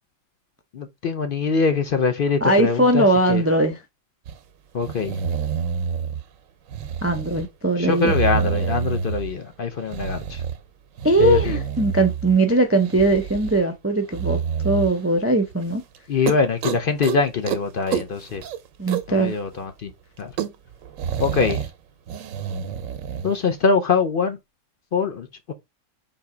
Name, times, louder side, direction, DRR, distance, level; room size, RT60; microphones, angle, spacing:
voice 1, 0.7-3.4 4.7-5.2 7.8-10.4 11.2-11.6 16.1-18.4 19.1-19.9 20.2-20.3 21.2-21.6 23.2-24.4 24.9-25.5, left 5 dB, 55° left, 0.7 m, -23 dB
voice 2, 2.4-3.8 7.0-8.1 11.0-14.4 14.6-15.8 18.8-19.3, right 2 dB, 20° right, 0.4 m, -20 dB
sound 1, 4.3-4.4 4.8-6.2 6.7-7.5 7.9-9.4 9.9-10.6 11.0-12.4 12.8-13.6 14.1-15.0 15.5-15.6 15.9-16.0 16.3-17.2 17.4-17.6 17.9-19.2 19.5-19.6 19.9-20.0 20.2-21.7 22.1-23.3, right 7 dB, 90° right, 1.0 m, -28 dB
4.0 x 2.8 x 4.9 m
omnidirectional pair, 1.3 m